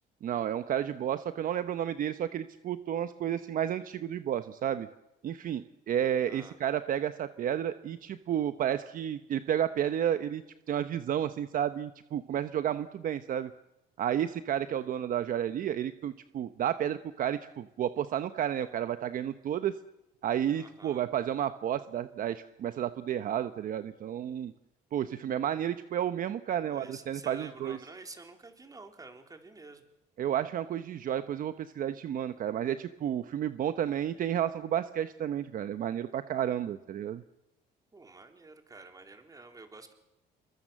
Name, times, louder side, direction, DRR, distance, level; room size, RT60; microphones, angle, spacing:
voice 1, 0.2-4.9 5.2-10.4 10.7-13.5 14.0-19.7 20.2-24.5 24.9-27.8 30.2-37.2, right 10 dB, 55° right, 11 dB, 0.9 m, -31 dB
voice 2, 20.5-21.0 26.6-29.8 37.9-39.9, right 3 dB, 20° right, 5 dB, 3.7 m, -49 dB
27.5 x 22.5 x 7.5 m, 0.94 s
cardioid pair, 110°, 17 cm